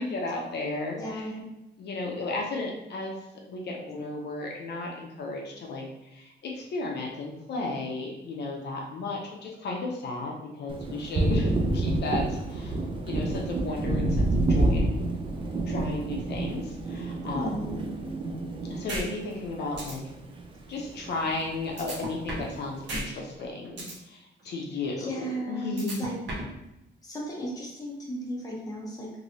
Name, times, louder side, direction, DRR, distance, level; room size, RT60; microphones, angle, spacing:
voice 1, 0.0-1.3 1.8-3.2 3.5-5.8 6.1-12.8 13.0-14.9 15.7-17.7 18.7-20.1 20.7-26.0, left 3 dB, 60° left, -1 dB, 0.5 m, -34 dB
voice 2, 1.0-1.4 17.3-17.8 25.0-26.1 27.0-29.1, equal, 20° left, -4 dB, 0.7 m, -35 dB
Thunder, 10.7-20.5 20.8-21.9, right 2 dB, 25° right, 0.3 m, -29 dB
sound 1, 18.9-19.0 19.4-19.5 19.8-19.9 21.8-22.5 22.9-23.0 23.4-23.9 25.8-26.5, right 1 dB, 65° right, 0.9 m, -33 dB
3.0 x 2.6 x 2.6 m, 0.89 s
wide cardioid pair, 160°, 19 cm